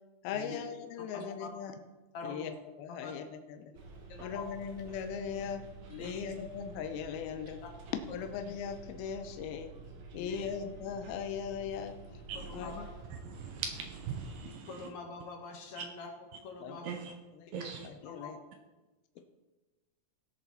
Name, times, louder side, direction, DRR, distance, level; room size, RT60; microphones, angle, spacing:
voice 1, 0.2-1.8 2.2-2.5 2.8-3.7 4.2-5.6 6.0-7.6 8.1-9.7 10.1-12.2 12.5-12.9 16.6-16.8 17.3-18.4, left 7 dB, 80° left, 7 dB, 2.6 m, -39 dB
voice 2, 1.1-1.5 2.1-2.5 3.0-3.1 4.1-4.5 5.9-6.2 8.1-8.2 10.1-10.5 12.3-12.8 14.4-16.9 17.5-17.7 18.0-18.3, left 4 dB, 55° left, 1 dB, 2.4 m, -45 dB
Bus, 3.7-14.3, right 3 dB, 55° right, 2.0 m, -49 dB
voice 3, 12.3-12.6 13.3-14.7 15.8-15.9 16.8-17.0 17.5-17.9, right 7 dB, 75° right, 5 dB, 2.2 m, -40 dB
17.5 x 6.7 x 4.2 m, 1.1 s
omnidirectional pair, 4.6 m